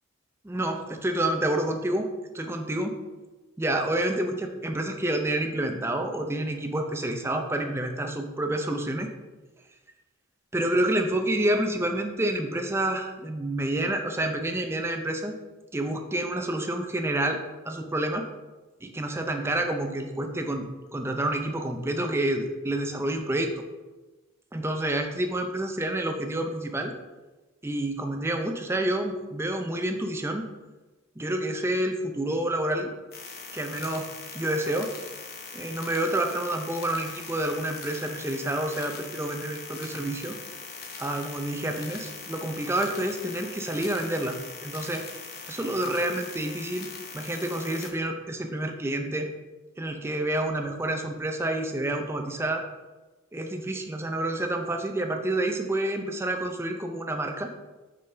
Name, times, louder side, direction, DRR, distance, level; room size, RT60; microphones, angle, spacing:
voice 1, 0.4-2.1 2.3-3.0 3.6-9.1 10.5-15.3 15.7-18.3 18.8-20.6 20.9-23.5 24.5-26.9 27.6-30.5 31.2-32.9 33.5-34.9 35.5-40.4 41.0-44.4 44.6-45.0 45.5-46.9 47.1-49.3 49.8-52.6 53.3-57.5, right 1 dB, 10° right, 4 dB, 0.5 m, -28 dB
sound 1, 33.1-47.9, left 4 dB, 50° left, 0.8 m, -41 dB
5.4 x 5.3 x 3.3 m, 1.2 s
head